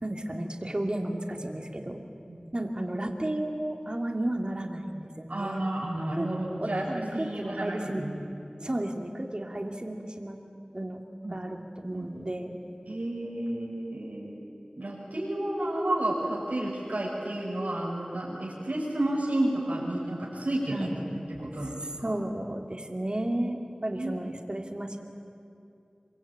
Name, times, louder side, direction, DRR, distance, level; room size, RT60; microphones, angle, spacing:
voice 1, 0.0-2.1 2.5-5.7 6.1-6.3 6.6-8.0 8.6-10.4 10.7-11.0 11.3-12.6 20.7-20.9 21.6-21.7 22.0-25.0, right 1 dB, 40° right, 2 dB, 2.9 m, -33 dB
voice 2, 5.3-8.2 11.2-11.4 11.9-12.1 12.9-14.3 14.8-21.0 21.3-22.2 23.9-24.3, right 1 dB, 80° right, -5 dB, 6.0 m, -31 dB
26.5 x 24.0 x 8.9 m, 2.6 s
wide cardioid pair, 50°, 2 cm